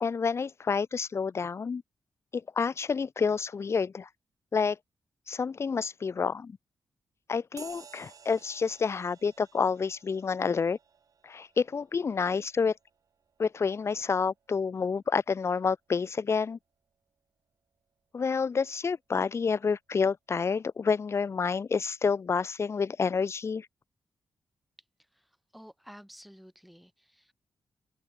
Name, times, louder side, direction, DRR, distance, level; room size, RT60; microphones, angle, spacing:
voice 1, 0.0-1.8 2.3-4.1 4.5-4.8 5.3-6.5 7.3-10.8 11.2-12.8 13.4-16.6 18.1-23.7, left 5 dB, 40° left, 0.7 m, -29 dB
sound 1, 7.6-15.5, right 6 dB, 55° right, 4.9 m, -55 dB
voice 2, 25.1-27.3, equal, ahead, 2.6 m, -52 dB
open air
cardioid pair, 105°, 7 cm